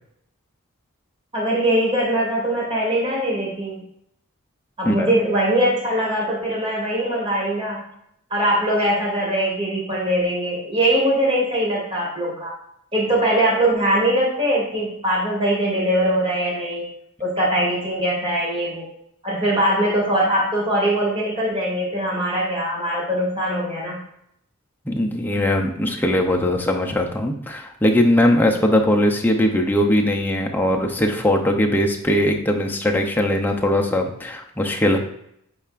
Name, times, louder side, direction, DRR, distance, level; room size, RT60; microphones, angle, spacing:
voice 1, 1.3-3.8 4.8-7.8 8.3-12.5 12.9-16.8 17.2-18.8 19.2-24.0, right 1 dB, 25° right, -5 dB, 2.5 m, -21 dB
voice 2, 24.9-35.0, left 1 dB, 10° left, 1 dB, 0.6 m, -20 dB
8.8 x 4.6 x 2.5 m, 0.74 s
head